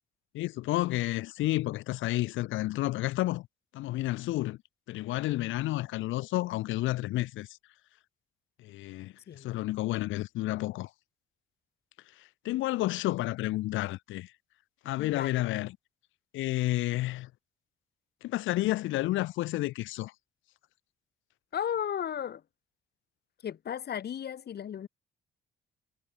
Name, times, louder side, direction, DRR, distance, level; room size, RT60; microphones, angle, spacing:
voice 1, 0.3-3.5 3.7-4.6 4.9-7.5 8.6-9.1 9.4-10.9 12.4-14.3 14.8-15.8 16.3-17.3 18.2-20.1, left 17 dB, 80° left, 0.4 m, -30 dB
voice 2, 15.0-15.5 21.5-22.4 23.4-24.9, left 9 dB, 55° left, 1.6 m, -35 dB
cardioid pair, 90°, 20 cm